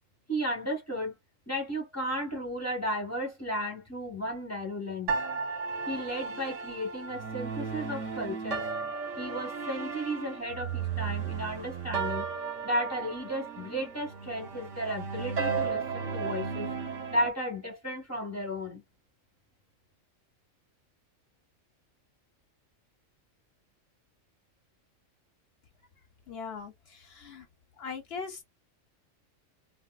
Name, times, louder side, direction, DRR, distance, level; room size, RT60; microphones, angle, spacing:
voice 1, 0.3-1.1 1.5-5.1 5.9-8.6 9.2-12.3 12.6-16.7 17.1-18.8, equal, 15° left, 1.0 m, -34 dB
sound 1, 5.1-17.3, right 5 dB, 70° right, 1.3 m, -34 dB
voice 2, 26.3-27.5 27.8-28.4, left 5 dB, 55° left, 0.8 m, -40 dB
3.6 x 2.3 x 2.3 m
omnidirectional pair, 1.4 m